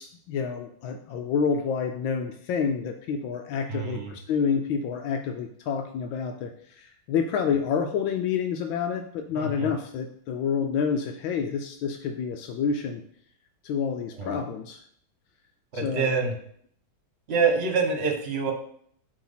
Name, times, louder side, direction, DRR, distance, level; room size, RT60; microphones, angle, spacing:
voice 1, 0.0-13.0 13.6-14.8 15.7-16.1, left 6 dB, 85° left, 5 dB, 1.4 m, -28 dB
voice 2, 3.7-4.1 9.3-9.7 14.2-14.4 15.7-16.3 17.3-18.5, right 4 dB, 35° right, 4 dB, 1.3 m, -26 dB
9.7 x 3.3 x 5.6 m, 0.64 s
omnidirectional pair, 2.1 m